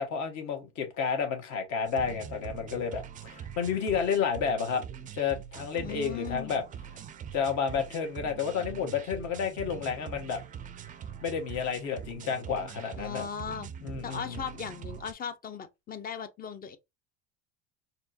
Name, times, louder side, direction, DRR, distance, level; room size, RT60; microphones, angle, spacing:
voice 1, 0.0-4.8 5.2-6.6 7.3-10.4 11.2-13.2 13.8-14.4, left 6 dB, 55° left, 1.5 m, -31 dB
sound 1, 1.9-15.1, right 8 dB, 25° right, 0.4 m, -43 dB
voice 2, 5.8-6.5 13.0-13.7 14.0-16.8, left 7 dB, 25° left, 0.6 m, -38 dB
4.3 x 3.0 x 2.7 m
supercardioid pair, 115°, 34 cm